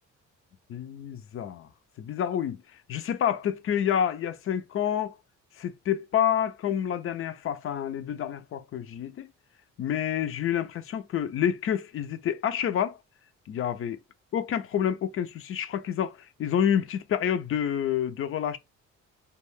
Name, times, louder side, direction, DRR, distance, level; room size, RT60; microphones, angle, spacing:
voice 1, 0.7-1.7 2.0-2.6 2.9-5.1 5.6-9.3 9.8-13.0 13.5-14.0 14.3-18.6, left 9 dB, 45° left, 0.4 m, -28 dB
2.3 x 2.2 x 3.1 m
cardioid pair, 90°, 30 cm